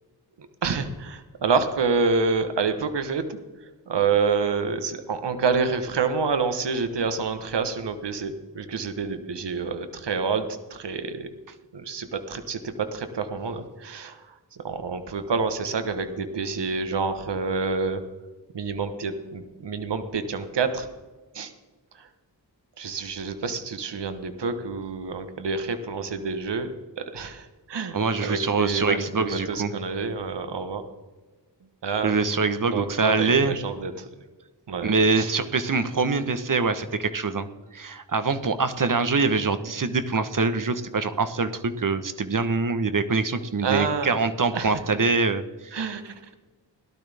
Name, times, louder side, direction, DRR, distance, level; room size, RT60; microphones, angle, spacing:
voice 1, 0.6-3.4 3.9-11.3 11.7-14.3 14.6-18.0 18.5-20.9 21.3-21.5 22.0-22.1 22.8-30.8 31.8-32.2 32.7-34.1 34.7-35.3 43.6-44.1 44.5-44.8 45.7-46.2, right 4 dB, 70° right, 9 dB, 1.2 m, -28 dB
voice 2, 27.9-29.7 32.0-33.6 34.8-45.8, right 4 dB, 45° right, 11 dB, 1.2 m, -24 dB
18.0 x 12.0 x 3.5 m, 1.2 s
cardioid pair, 55°, 44 cm